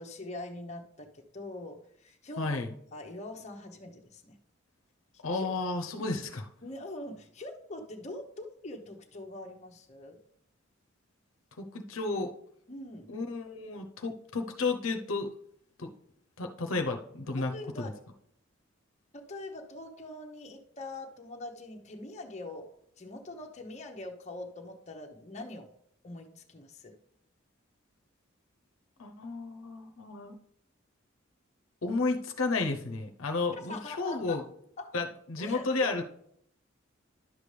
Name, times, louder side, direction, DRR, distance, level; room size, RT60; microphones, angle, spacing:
voice 1, 0.0-2.6 2.9-4.4 5.3-5.5 6.6-10.2 12.7-13.1 17.4-17.9 19.1-22.7 23.0-25.7 26.0-26.9 33.7-34.4 34.8-34.9 35.4-35.6, left 2 dB, 35° left, 2 dB, 0.9 m, -43 dB
voice 2, 2.4-2.7 5.2-6.5 11.6-12.3 13.1-15.3 15.8-15.9 16.4-17.5 17.8-17.9 29.0-30.3 31.8-34.4 34.9-36.0, left 3 dB, 80° left, 4 dB, 0.7 m, -32 dB
11.0 x 6.9 x 3.3 m, 0.71 s
head